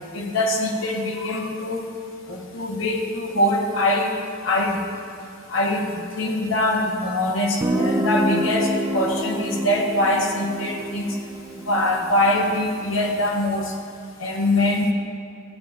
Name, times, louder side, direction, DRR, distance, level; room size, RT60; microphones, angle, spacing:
voice 1, 0.1-1.9 2.3-4.1 4.4-4.8 5.5-11.2 11.7-13.7 14.2-14.9, left 1 dB, 70° left, 1 dB, 1.0 m, -23 dB
Guitar, 7.6-13.2, right 1 dB, 15° right, 0.4 m, -27 dB
13.0 x 7.7 x 2.4 m, 2.6 s
head